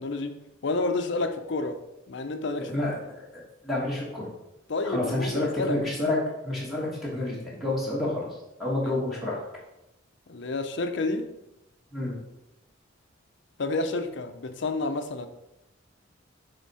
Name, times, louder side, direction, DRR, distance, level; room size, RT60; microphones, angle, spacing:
voice 1, 0.0-1.8 2.1-2.7 4.7-5.8 8.8-9.0 10.3-11.3 13.6-15.3, left 3 dB, 65° left, 8 dB, 0.6 m, -30 dB
voice 2, 2.6-3.0 3.3-4.3 4.8-6.2 6.4-8.3 8.6-9.4 11.9-12.2, left 1 dB, ahead, -6 dB, 1.5 m, -29 dB
7.2 x 3.5 x 4.2 m, 0.90 s
head